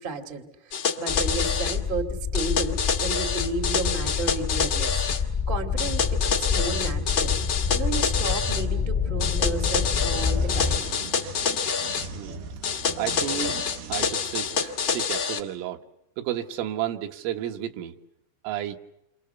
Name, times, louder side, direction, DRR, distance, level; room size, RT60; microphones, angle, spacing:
voice 1, 0.0-10.8, right 3 dB, 45° right, 7 dB, 0.6 m, -33 dB
sound 1, 0.7-1.8 2.3-5.2 5.8-8.6 9.2-12.1 12.6-15.4, left 6 dB, 55° left, 1.3 m, -27 dB
sound 2, 1.1-10.8, left 6 dB, 10° left, 5.2 m, -27 dB
sound 3, 9.5-15.1, right 4 dB, 65° right, 3.3 m, -41 dB
voice 2, 12.1-12.6 13.0-13.6 13.9-15.8 16.2-18.0 18.4-18.8, right 11 dB, 85° right, 5 dB, 4.0 m, -32 dB
29.0 x 26.5 x 7.0 m, 0.82 s
omnidirectional pair, 5.7 m